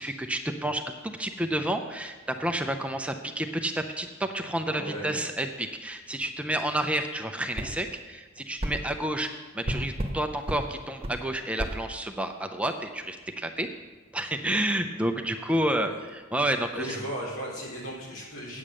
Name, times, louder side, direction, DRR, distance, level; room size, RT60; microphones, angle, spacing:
voice 1, 0.0-13.7 14.1-17.0, right 1 dB, 5° right, 6 dB, 0.5 m, -30 dB
voice 2, 4.7-5.2 15.7-16.0 16.7-18.6, right 1 dB, 75° left, -3 dB, 3.4 m, -36 dB
sound 1, 7.5-7.7 8.6-8.8 9.6-10.2 10.5-10.6 11.0-11.2 11.6-11.8, right 1 dB, 30° right, 1.1 m, -30 dB
8.6 x 8.6 x 6.3 m, 1.3 s
head